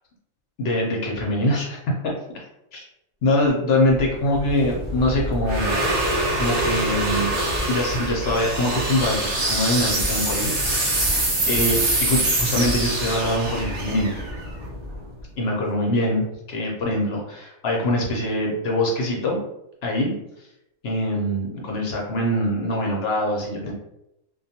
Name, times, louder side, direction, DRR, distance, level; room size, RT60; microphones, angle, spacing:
voice 1, 0.6-1.8 2.0-2.1 2.7-2.8 3.2-5.8 6.3-7.3 7.7-11.1 11.5-14.1 15.4-19.4 19.8-20.1 20.8-23.7, left 1 dB, 60° left, -2 dB, 0.7 m, -23 dB
sound 1, 4.0-15.2, right 1 dB, 65° right, 0.4 m, -24 dB
2.3 x 2.2 x 2.7 m, 0.84 s
omnidirectional pair, 1.5 m